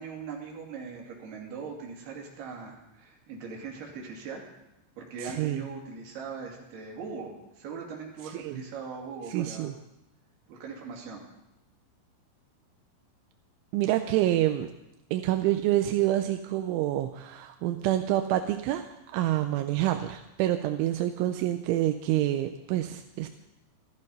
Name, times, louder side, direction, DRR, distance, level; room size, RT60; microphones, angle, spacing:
voice 1, 0.0-4.4 5.0-9.7 10.5-11.3, right 5 dB, 60° right, -1 dB, 4.4 m, -40 dB
voice 2, 5.2-5.7 8.3-8.6 9.3-9.7 13.7-14.7 15.1-23.3, right 13 dB, 85° right, 6 dB, 3.1 m, -27 dB
14.0 x 14.0 x 5.4 m, 0.90 s
omnidirectional pair, 5.4 m